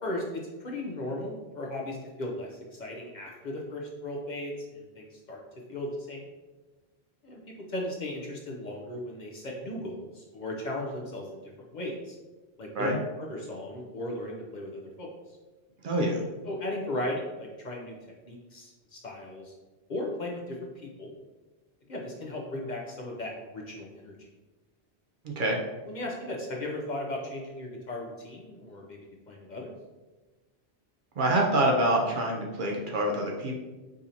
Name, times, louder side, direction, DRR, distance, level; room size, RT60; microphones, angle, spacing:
voice 1, 0.0-5.4 5.7-6.3 7.2-7.4 7.7-12.2 12.6-12.9 13.2-15.4 16.4-18.0 18.3-19.5 19.9-21.1 21.9-24.2 25.9-29.0 29.3-29.7, left 1 dB, 50° left, -1 dB, 0.6 m, -36 dB
voice 2, 15.8-16.2 25.2-25.6 31.2-33.5, right 1 dB, 60° right, 0 dB, 0.7 m, -26 dB
4.9 x 2.7 x 2.7 m, 1.2 s
omnidirectional pair, 1.1 m